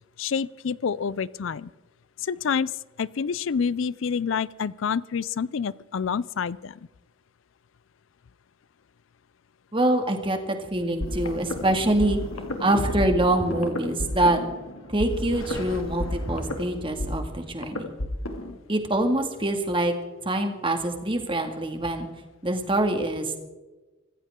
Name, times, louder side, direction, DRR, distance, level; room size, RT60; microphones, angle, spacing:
voice 1, 0.2-1.7 2.2-2.7 3.0-6.8, left 6 dB, 70° left, 20 dB, 0.4 m, -28 dB
voice 2, 9.7-12.2 12.6-14.4 14.9-17.9 18.7-19.9 20.2-22.1 22.4-23.4, right 1 dB, 25° right, 5 dB, 2.1 m, -25 dB
sound 1, 11.0-18.6, left 1 dB, 85° left, 2.4 m, -32 dB
25.5 x 15.0 x 3.7 m, 1.2 s
head